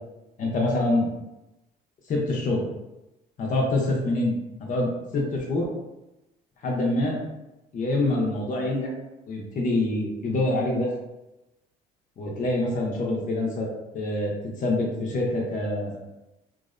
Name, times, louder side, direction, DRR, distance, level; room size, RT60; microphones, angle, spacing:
voice 1, 0.4-1.1 2.1-2.6 3.4-4.3 4.6-5.7 6.6-7.2 7.7-8.9 9.3-10.9 12.2-13.7 13.9-14.3 14.6-16.0, left 2 dB, 50° left, -2 dB, 0.6 m, -25 dB
2.6 x 2.0 x 2.5 m, 0.95 s
cardioid pair, 110°, 17 cm